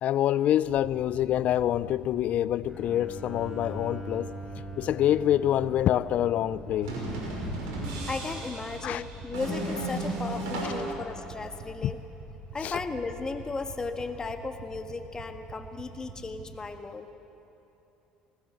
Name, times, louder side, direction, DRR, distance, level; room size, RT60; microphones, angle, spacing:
voice 1, 0.0-4.3 4.8-7.0 8.8-9.0 11.8-11.9 12.6-12.8, left 12 dB, 60° left, 0.5 m, -26 dB
sound 1, 0.6-16.6, right 2 dB, 65° right, 6.0 m, -46 dB
Bowed string instrument, 2.7-9.7, right 1 dB, 5° right, 6.1 m, -43 dB
sound 2, 6.8-10.9, right 2 dB, 85° right, 5.8 m, -34 dB
voice 2, 8.0-12.0 12.5-17.1, left 3 dB, 25° left, 1.7 m, -35 dB
19.5 x 19.0 x 7.6 m
supercardioid pair, 80°, 3 cm